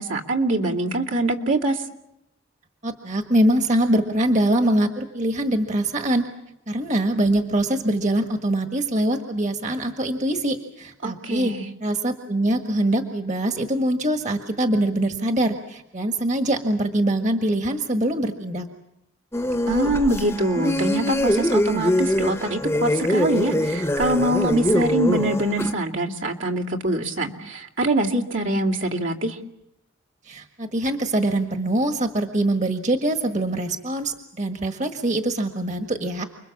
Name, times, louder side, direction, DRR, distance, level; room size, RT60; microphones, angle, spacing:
voice 1, 0.0-1.9 11.0-11.7 19.7-29.4, right 1 dB, 70° right, 0 dB, 2.5 m, -24 dB
voice 2, 2.8-6.3 6.7-11.5 11.8-18.7 30.3-36.2, right 1 dB, 35° right, 5 dB, 1.6 m, -23 dB
sound 1, 19.3-25.7, left 1 dB, 15° left, 1.0 m, -23 dB
30.0 x 22.5 x 7.3 m, 0.85 s
head